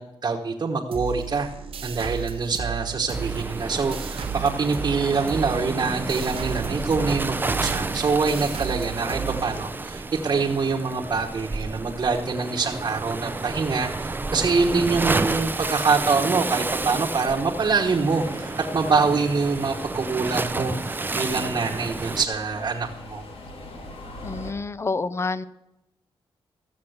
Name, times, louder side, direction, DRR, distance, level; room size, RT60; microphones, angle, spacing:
voice 1, 0.0-1.5 1.8-23.2, right 4 dB, 45° right, -1 dB, 1.2 m, -25 dB
sound 1, 0.9-10.1, right 8 dB, 85° right, 1.1 m, -34 dB
Waves surf, 3.1-22.2, right 3 dB, 20° right, 0.5 m, -30 dB
Subway metro underground, 17.7-24.5, left 2 dB, 75° left, 2.2 m, -42 dB
voice 2, 24.2-25.4, left 3 dB, 30° left, 16 dB, 0.6 m, -28 dB
15.0 x 7.0 x 8.0 m, 0.91 s
wide cardioid pair, 105°, 9 cm